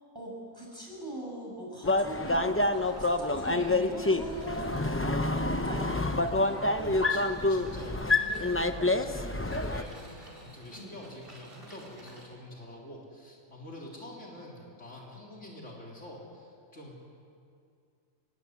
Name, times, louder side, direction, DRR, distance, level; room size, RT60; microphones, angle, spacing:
voice 1, 0.1-6.5 10.7-11.0, right 1 dB, 15° right, -3 dB, 7.1 m, -41 dB
sound 1, 1.8-9.8, left 2 dB, 15° left, 0.6 m, -27 dB
sound 2, 2.7-12.2, right 1 dB, 40° right, 4.9 m, -54 dB
voice 2, 6.8-17.0, left 1 dB, 55° left, -2 dB, 3.9 m, -46 dB
25.0 x 20.5 x 8.2 m, 2.4 s
omnidirectional pair, 1.5 m